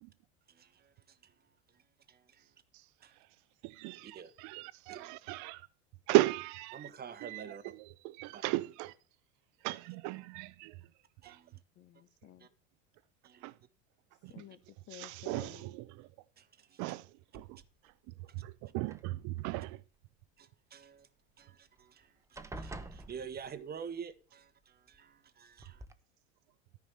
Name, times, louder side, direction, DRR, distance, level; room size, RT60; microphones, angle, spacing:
voice 1, 0.5-1.3 1.7-1.8 2.1-2.5 3.0-3.2 4.0-4.3 4.9-5.1 6.7-7.6 8.3-8.4 9.7-9.9 11.2-11.6 12.4-12.5 13.2-13.5 14.3-14.4 16.4-17.0 20.4-21.1 21.4-25.8, right 7 dB, 25° right, 1.2 m, -48 dB
voice 2, 3.6-5.6 6.1-6.8 7.2-7.4 8.2-8.9 9.6-10.7 11.3-11.4 13.4-13.5 14.9-16.1 16.8-17.0 17.3-17.6 18.4-19.8, right 18 dB, 55° right, 0.8 m, -35 dB
voice 3, 11.7-12.5 14.3-15.8, left 11 dB, 40° left, 1.4 m, -53 dB
sound 1, 17.3-17.9 18.8-19.6 21.4-21.5 21.8-22.0 22.3-23.8 24.9-25.0 25.6-25.9, right 2 dB, 10° right, 1.0 m, -47 dB
13.5 x 4.9 x 8.2 m
hypercardioid pair, 95°, 36 cm